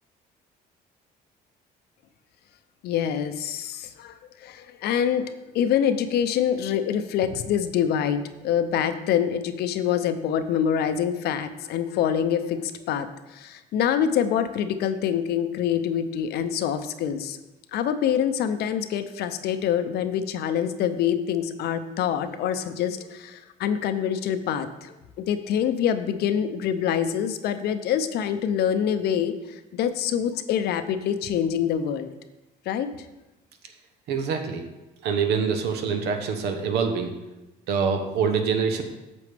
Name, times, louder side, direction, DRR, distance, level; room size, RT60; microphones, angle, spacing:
voice 1, 2.8-4.1 4.4-17.4 17.7-32.1 32.7-32.9, left 9 dB, 70° left, 10 dB, 0.6 m, -25 dB
voice 2, 34.1-34.6 35.0-37.1 37.7-38.8, right 6 dB, 80° right, 5 dB, 1.1 m, -25 dB
8.3 x 6.9 x 3.4 m, 1.0 s
cardioid pair, 110°, 17 cm